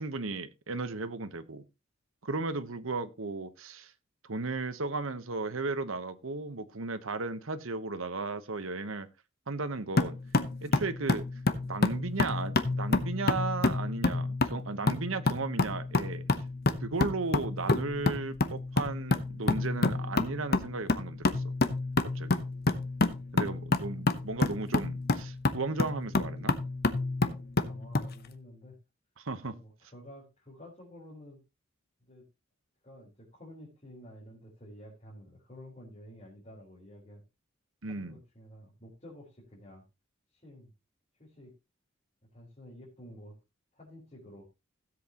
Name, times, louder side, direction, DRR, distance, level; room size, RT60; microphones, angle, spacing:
voice 1, 0.0-1.6 2.2-3.9 4.2-9.1 9.5-10.2 10.6-11.3 11.6-16.2 16.8-21.5 22.0-22.4 23.3-26.6 29.2-29.5 37.8-38.2, right 3 dB, 85° right, 1.1 m, -35 dB
sound 1, 10.0-28.1, left 2 dB, 50° left, 0.9 m, -29 dB
voice 2, 23.1-23.5 27.3-28.8 29.4-31.4 32.0-32.3 32.8-37.2 37.9-39.8 40.3-40.7 41.2-41.5 42.3-43.4 43.7-44.5, left 1 dB, 35° left, 4.2 m, -51 dB
16.5 x 7.8 x 2.9 m
head